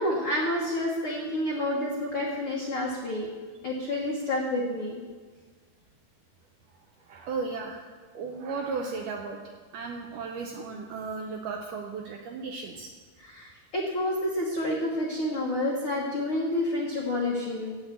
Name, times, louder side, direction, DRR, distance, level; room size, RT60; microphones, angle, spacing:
voice 1, 0.0-3.3 3.6-5.0 13.2-17.8, left 1 dB, 90° left, -2 dB, 1.1 m, -29 dB
voice 2, 7.0-7.8 8.1-9.4 9.7-12.9, right 4 dB, 85° right, 2 dB, 1.9 m, -35 dB
8.2 x 8.1 x 8.3 m, 1.5 s
omnidirectional pair, 4.6 m